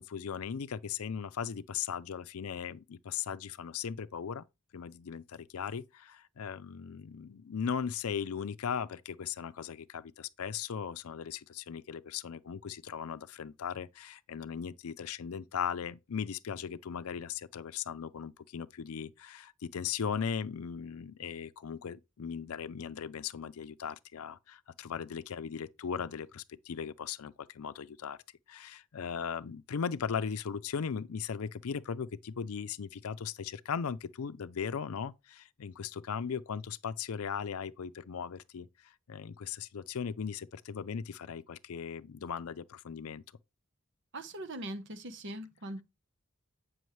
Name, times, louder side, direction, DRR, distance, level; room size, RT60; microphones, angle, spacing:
voice 1, 0.0-4.4 4.7-28.2 28.5-43.2, left 7 dB, 85° left, 0.5 m, -38 dB
voice 2, 44.1-45.8, right 1 dB, 55° right, 1.0 m, -41 dB
9.2 x 6.2 x 3.2 m
head